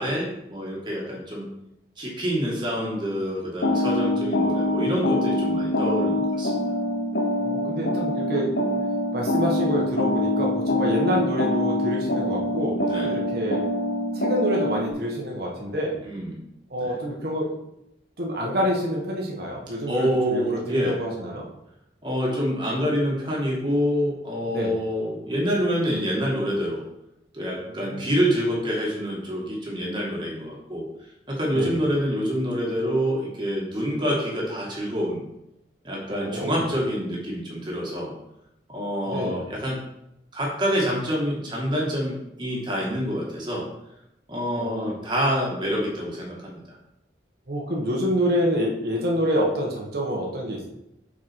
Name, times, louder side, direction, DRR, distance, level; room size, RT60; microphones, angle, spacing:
voice 1, 0.0-1.5 2.0-6.5 12.8-13.2 16.0-16.4 16.8-16.9 19.9-20.9 22.0-26.8 27.3-30.8 31.3-35.2 35.8-38.1 38.7-39.8 40.3-43.7 44.3-46.6, equal, 25° right, -3 dB, 2.1 m, -26 dB
sound 1, 3.6-14.9, left 1 dB, 65° left, 1.0 m, -25 dB
voice 2, 7.4-8.5 9.1-13.7 14.1-16.0 16.7-17.5 18.2-21.4 24.5-24.7 27.8-28.1 31.5-31.8 36.1-36.6 39.0-39.5 44.6-44.9 47.5-50.7, equal, 55° right, -2 dB, 1.4 m, -27 dB
6.3 x 5.9 x 4.6 m, 0.83 s
head